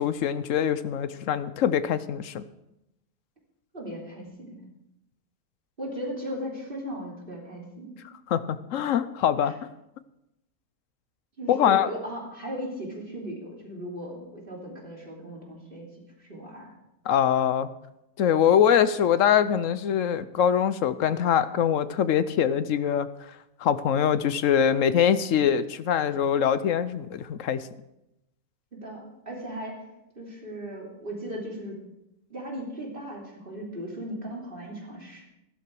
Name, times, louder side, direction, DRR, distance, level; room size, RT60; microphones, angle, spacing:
voice 1, 0.0-2.4 8.3-9.5 11.5-11.9 17.1-17.7 18.2-23.1 23.6-27.6, left 9 dB, 65° left, 14 dB, 0.8 m, -23 dB
voice 2, 3.7-4.6 5.8-8.0 9.4-9.5 11.4-15.9 16.2-16.7 28.7-29.8 30.1-31.8 32.3-35.2, equal, 30° right, -2 dB, 3.3 m, -37 dB
13.5 x 12.5 x 4.7 m, 0.86 s
omnidirectional pair, 1.8 m